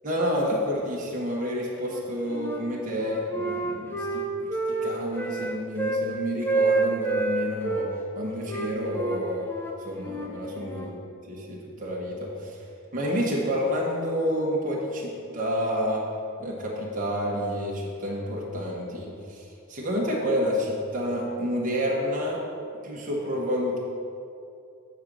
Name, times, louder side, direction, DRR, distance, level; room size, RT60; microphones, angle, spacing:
voice 1, 0.0-4.3 4.8-9.5 9.8-11.0 11.3-12.6 12.9-16.0 16.4-22.4 22.8-23.8, equal, 35° right, -4 dB, 1.1 m, -29 dB
Wind instrument woodwind instrument, 1.8-2.6 3.0-6.1 6.4-7.9 8.5-11.0, right 3 dB, 10° left, 0.5 m, -28 dB
7.4 x 3.9 x 6.2 m, 2.5 s
head